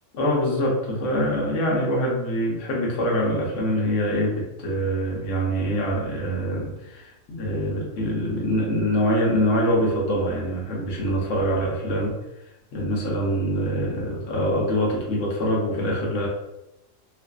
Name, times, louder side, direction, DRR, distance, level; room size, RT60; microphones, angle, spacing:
voice 1, 0.1-12.1 12.7-16.3, equal, 70° left, -3 dB, 1.0 m, -24 dB
2.5 x 2.5 x 2.3 m, 0.92 s
omnidirectional pair, 1.3 m